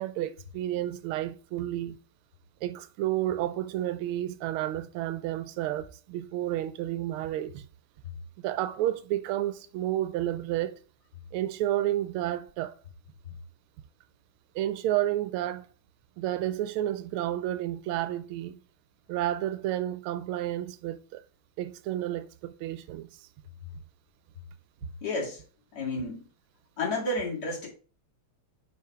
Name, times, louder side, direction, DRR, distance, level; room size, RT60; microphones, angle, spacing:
voice 1, 0.0-2.0 2.6-7.6 8.4-10.7 11.3-12.8 14.5-15.7 16.2-18.6 19.1-21.2 21.6-23.3, right 13 dB, 85° right, 1.4 m, -31 dB
voice 2, 25.0-25.4 25.7-26.2 26.8-27.7, left 2 dB, 45° left, 2.8 m, -31 dB
5.6 x 4.9 x 4.8 m
omnidirectional pair, 2.3 m